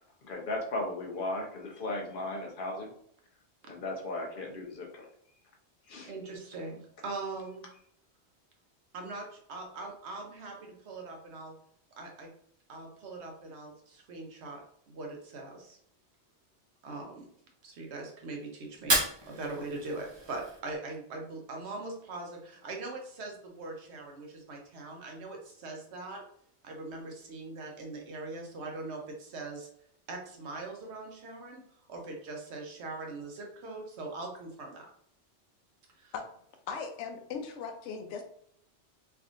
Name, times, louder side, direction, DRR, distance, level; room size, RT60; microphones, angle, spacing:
voice 1, 0.2-2.9 3.7-5.1 5.9-6.1, left 2 dB, 55° left, 1 dB, 0.9 m, -36 dB
voice 2, 6.1-7.7 8.9-11.6 12.0-12.3 12.7-15.8 16.8-17.3 17.6-26.2 26.6-29.7 30.1-31.6 31.9-34.9 36.0-36.1, right 3 dB, 75° right, 1 dB, 1.0 m, -41 dB
Fire, 18.7-20.8, right 2 dB, 30° right, 0.6 m, -32 dB
voice 3, 36.7-38.2, left 5 dB, 85° left, 5 dB, 0.9 m, -38 dB
3.3 x 2.7 x 2.5 m, 0.67 s
omnidirectional pair, 1.1 m